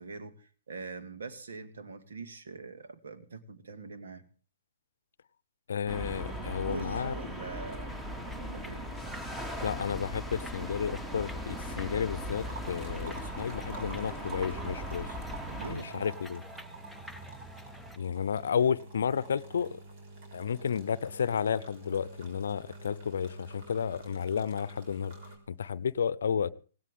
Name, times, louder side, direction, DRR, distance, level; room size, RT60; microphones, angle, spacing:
voice 1, 0.0-4.2 6.6-8.0 8.4-8.9 15.5-16.1, right 4 dB, 75° right, 2.1 m, -43 dB
voice 2, 5.7-7.2 9.6-15.2 15.7-16.4 18.0-19.8 20.3-25.1 25.5-26.5, left 7 dB, 75° left, 0.7 m, -32 dB
sound 1, 5.9-15.8, equal, 15° right, 2.6 m, -39 dB
sound 2, 7.9-18.0, equal, ahead, 0.7 m, -48 dB
sound 3, 12.4-25.4, right 3 dB, 50° right, 6.1 m, -47 dB
18.0 x 17.0 x 3.8 m
hypercardioid pair, 125°, 0 cm